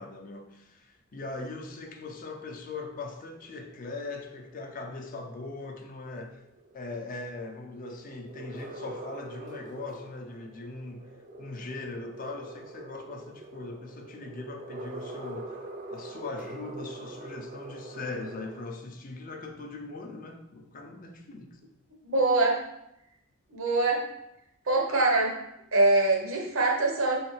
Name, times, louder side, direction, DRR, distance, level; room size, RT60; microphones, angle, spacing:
voice 1, 0.0-6.4 6.7-11.1 11.4-21.6, left 3 dB, 40° left, 3 dB, 0.4 m, -40 dB
sound 1, 1.3-18.6, right 2 dB, 35° right, 0.4 m, -45 dB
voice 2, 22.0-22.6 23.5-24.0 24.7-25.4 25.7-27.2, right 2 dB, 70° right, 1 dB, 0.8 m, -24 dB
3.8 x 3.2 x 3.1 m, 0.82 s
head